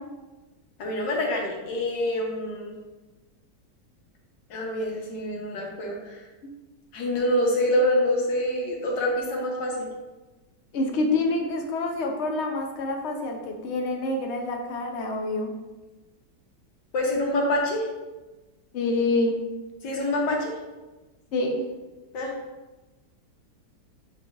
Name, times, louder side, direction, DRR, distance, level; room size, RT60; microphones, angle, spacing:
voice 1, 0.8-2.7 4.5-6.2 6.9-9.9 16.9-17.9 19.8-20.5 22.1-22.3, left 1 dB, 80° left, -1 dB, 1.8 m, -26 dB
voice 2, 10.7-15.5 18.7-19.3 21.3-21.5, left 2 dB, 55° left, 2 dB, 0.8 m, -27 dB
7.6 x 4.9 x 2.5 m, 1.2 s
omnidirectional pair, 1.9 m